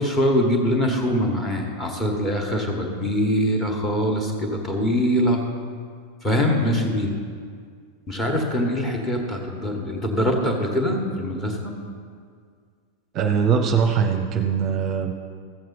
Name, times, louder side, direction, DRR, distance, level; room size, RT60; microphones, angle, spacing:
voice 1, 0.0-5.4 6.2-7.1 8.1-11.7, equal, 15° left, 2 dB, 1.5 m, -23 dB
voice 2, 13.1-15.1, right 7 dB, 35° right, 5 dB, 0.7 m, -21 dB
14.5 x 7.6 x 4.1 m, 2.1 s
figure-of-eight pair, 90°, 0 cm